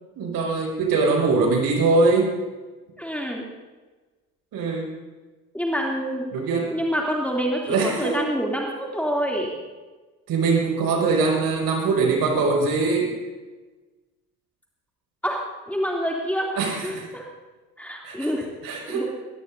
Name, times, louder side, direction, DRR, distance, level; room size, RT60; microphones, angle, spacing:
voice 1, 0.1-2.3 4.5-4.9 6.3-6.7 7.7-8.3 10.3-13.1 16.6-17.1 18.0-18.3 18.6-19.1, right 3 dB, 50° right, 0 dB, 6.0 m, -22 dB
voice 2, 3.0-3.4 5.5-6.3 6.7-9.5 15.2-15.4 15.7-17.3 17.8-19.0, equal, 5° left, -2 dB, 2.8 m, -27 dB
22.5 x 20.0 x 2.7 m, 1.3 s
figure-of-eight pair, 60°, 46 cm